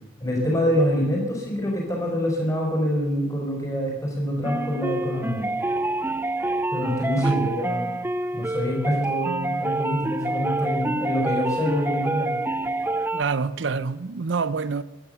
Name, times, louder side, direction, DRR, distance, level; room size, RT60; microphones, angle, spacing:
voice 1, 0.2-5.5 6.7-7.9 8.3-12.3, equal, 15° left, 5.1 m, -25 dB
sound 1, 4.4-13.2, right 2 dB, 10° right, 0.4 m, -27 dB
voice 2, 7.2-7.5 13.1-14.8, right 5 dB, 65° right, 0.6 m, -27 dB
17.0 x 12.0 x 6.9 m
head